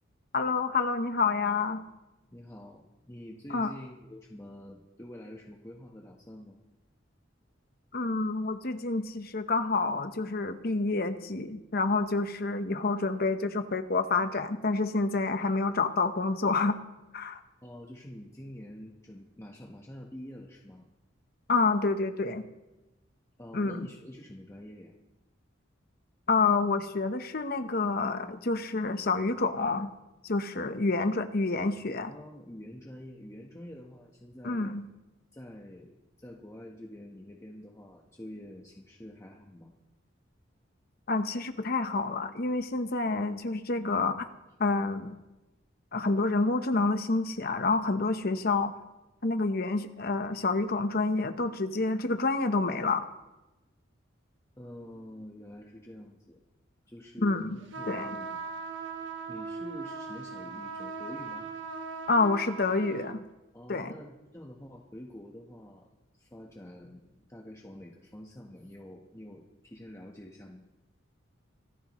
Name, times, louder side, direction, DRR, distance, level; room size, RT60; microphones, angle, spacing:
voice 1, 0.3-1.8 3.5-3.7 7.9-16.8 17.1-17.4 21.5-22.5 23.5-23.9 26.3-29.9 30.2-32.1 34.4-34.9 41.1-44.3 44.6-45.2 45.9-48.7 49.2-53.1 57.2-57.6 57.9-58.1 62.1-63.2 63.7-63.9, left 3 dB, 50° left, 8 dB, 1.0 m, -28 dB
voice 2, 2.3-6.6 17.6-20.9 23.4-24.9 32.1-34.8 35.3-39.7 54.6-56.4 56.9-58.3 59.3-61.5 63.5-65.9 66.1-70.7, left 1 dB, 15° left, -1 dB, 1.2 m, -46 dB
sound 1, 57.7-63.2, right 4 dB, 65° right, 1.3 m, -39 dB
25.5 x 14.0 x 3.1 m, 1.0 s
head